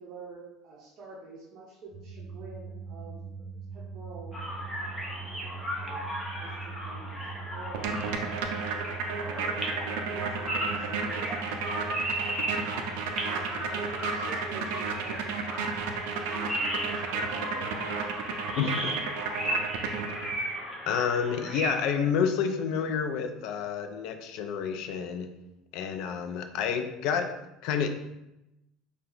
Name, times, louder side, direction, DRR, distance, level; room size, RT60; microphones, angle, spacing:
voice 1, 0.0-3.5 3.7-4.4 5.2-5.3 5.7-7.1 7.4-8.3 8.9-11.7 13.2-15.9 16.1-18.0 18.3-18.8 19.4-19.9 21.6-21.7 22.0-22.6, right 4 dB, 45° right, -5 dB, 0.6 m, -47 dB
sound 1, 1.9-18.1, right 5 dB, 45° left, 1.2 m, -44 dB
sound 2, 4.3-21.9, equal, 10° left, 0.6 m, -36 dB
sound 3, 7.7-20.5, right 5 dB, 85° right, 0.4 m, -33 dB
voice 2, 18.6-18.9 20.9-25.3 25.7-27.4 27.6-27.9, left 7 dB, 60° left, 7 dB, 0.3 m, -29 dB
2.8 x 2.2 x 3.7 m, 0.90 s
cardioid pair, 150°, 0 cm